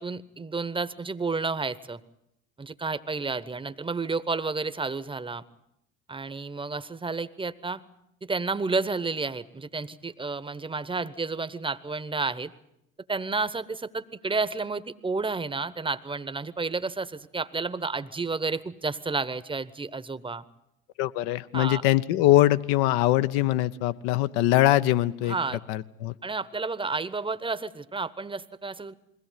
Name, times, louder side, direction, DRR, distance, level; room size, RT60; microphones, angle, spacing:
voice 1, 0.0-2.0 2.6-5.4 6.1-7.8 8.2-12.5 13.1-20.4 21.5-21.8 25.3-25.6 26.2-28.9, right 4 dB, 10° right, 14 dB, 1.0 m, -31 dB
voice 2, 21.0-25.4 25.7-26.2, left 15 dB, 60° left, 13 dB, 1.0 m, -22 dB
22.0 x 17.0 x 9.3 m, 0.80 s
hypercardioid pair, 65°, 41 cm